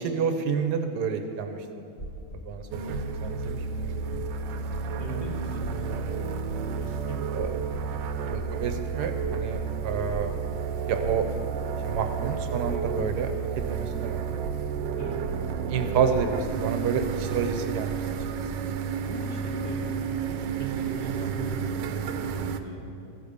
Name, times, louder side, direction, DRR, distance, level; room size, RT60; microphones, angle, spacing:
voice 1, 0.0-1.8 2.4-3.0 3.2-4.3 7.3-7.5 8.3-10.3 10.9-11.3 11.8-13.3 13.7-14.4 15.7-17.9, right 6 dB, 70° right, 6 dB, 1.2 m, -29 dB
sound 1, 2.0-2.4 2.9-3.3 3.8-4.3 4.7-5.1 5.6-6.0 6.5-6.9 7.4-7.8 8.3-8.8 9.2-9.7 10.1-10.6 11.0-11.4 11.9-13.1 13.5-14.0 14.4-14.9 15.2-15.7 16.1-16.6 17.0-17.5 17.9-18.3, right 1 dB, 35° left, 1.0 m, -38 dB
sound 2, 2.7-22.6, right 7 dB, 90° right, 1.3 m, -31 dB
voice 2, 5.0-6.4 6.7-7.5 7.8-8.1 15.0-15.2 19.0-23.1, right 1 dB, 65° left, -2 dB, 2.1 m, -39 dB
14.5 x 5.2 x 6.5 m, 2.6 s
omnidirectional pair, 1.9 m